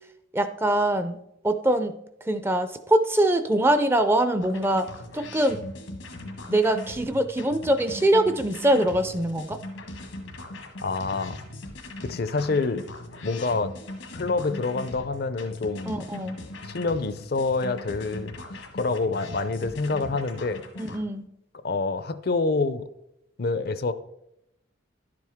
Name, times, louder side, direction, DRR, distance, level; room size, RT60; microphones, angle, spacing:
voice 1, 0.3-1.2 1.4-1.9 2.3-4.9 5.1-5.6 6.5-9.6 15.9-16.4 20.8-21.3, right 1 dB, 10° right, 9 dB, 0.4 m, -23 dB
sound 1, 4.4-21.0, left 1 dB, 90° left, 1.5 m, -40 dB
voice 2, 10.8-11.4 12.0-12.9 13.2-13.7 14.1-16.0 16.6-18.3 18.7-20.6 21.6-22.9 23.4-23.9, left 3 dB, 50° left, 13 dB, 0.5 m, -27 dB
11.0 x 7.7 x 3.6 m, 0.82 s
head